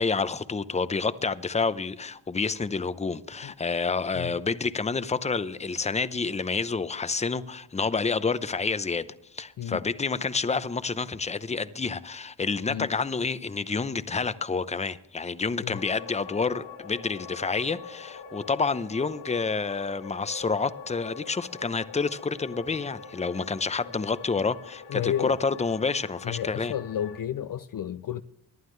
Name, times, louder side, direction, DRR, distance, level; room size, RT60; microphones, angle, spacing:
voice 1, 0.0-9.1 9.3-26.7, left 4 dB, 15° left, 0.7 m, -29 dB
sound 1, 15.7-27.2, left 6 dB, 80° left, 3.0 m, -44 dB
voice 2, 24.9-25.4 26.2-28.2, left 10 dB, 50° left, 0.5 m, -31 dB
19.0 x 11.5 x 3.3 m
cardioid pair, 70°, 46 cm